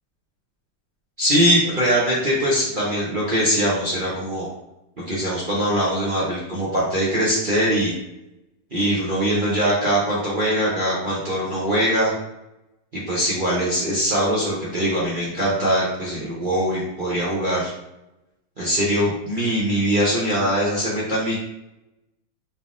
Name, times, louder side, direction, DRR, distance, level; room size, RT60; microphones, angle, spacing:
voice 1, 1.2-4.5 5.0-7.9 8.7-12.1 12.9-17.7 18.6-21.3, equal, 50° right, -7 dB, 0.6 m, -22 dB
4.2 x 3.5 x 2.5 m, 0.90 s
omnidirectional pair, 2.2 m